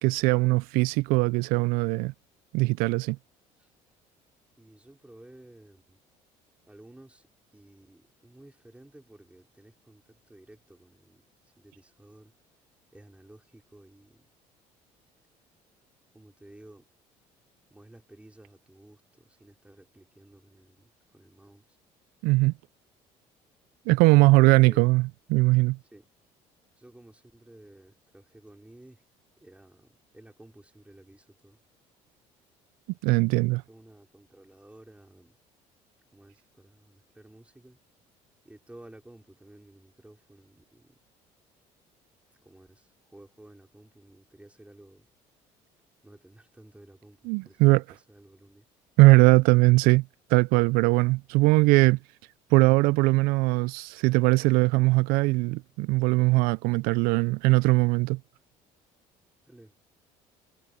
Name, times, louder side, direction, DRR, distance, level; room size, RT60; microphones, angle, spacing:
voice 1, 0.0-2.1 2.5-3.2 22.2-22.5 23.9-25.0 25.3-25.8 33.0-33.6 47.3-47.8 49.0-50.0 50.3-52.0 52.5-58.2, right 23 dB, 80° right, 0.4 m, -20 dB
voice 2, 4.6-6.0 6.7-11.3 11.6-12.3 12.9-14.3 16.1-16.9 17.7-21.8 24.2-24.9 25.9-26.1 26.8-29.0 29.4-31.6 33.1-35.4 36.1-37.8 38.4-41.0 42.4-45.1 46.0-48.7 59.4-59.8, right 1 dB, 10° right, 4.5 m, -53 dB
supercardioid pair, 80°, 15 cm